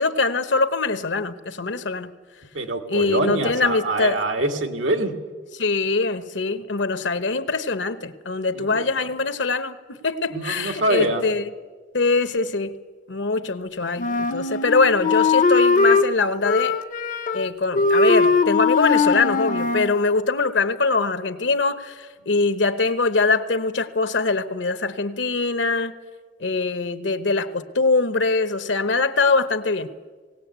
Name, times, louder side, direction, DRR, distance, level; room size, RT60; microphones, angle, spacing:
voice 1, 0.0-2.1 2.9-4.2 5.5-11.5 11.9-12.8 13.1-16.8 17.3-25.9 26.4-29.9, left 3 dB, 75° left, 1.1 m, -23 dB
voice 2, 2.5-5.1 8.5-8.9 10.3-11.3, right 2 dB, 90° right, 2.0 m, -24 dB
Wind instrument woodwind instrument, 14.0-16.1 16.4-17.5 17.7-19.9, left 4 dB, 45° left, 0.6 m, -20 dB
19.0 x 18.0 x 8.2 m
head